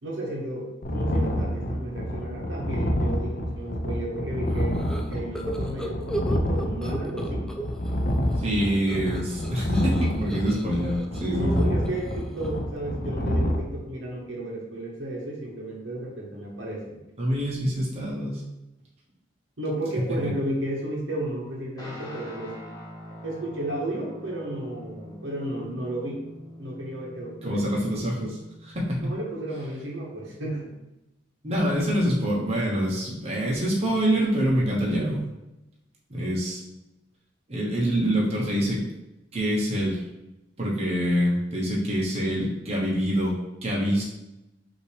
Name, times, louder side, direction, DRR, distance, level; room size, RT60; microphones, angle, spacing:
voice 1, 0.0-7.5 11.2-17.0 19.6-22.5 23.2-26.2 26.6-27.6 29.0-30.7, right 1 dB, 80° right, -3 dB, 1.2 m, -33 dB
sound 1, 0.8-13.6, equal, 50° left, 0.6 m, -28 dB
sound 2, 4.5-8.0 8.3-12.7, right 1 dB, 5° left, 0.3 m, -37 dB
voice 2, 8.4-11.6 17.2-18.4 20.2-20.3 27.4-29.1 31.4-35.2 36.1-36.6 37.5-38.9 39.3-40.0 40.6-44.0, equal, 35° right, -5 dB, 1.0 m, -25 dB
Guitar, 21.8-30.6, left 1 dB, 20° left, 1.2 m, -44 dB
5.5 x 2.9 x 3.3 m, 0.96 s
head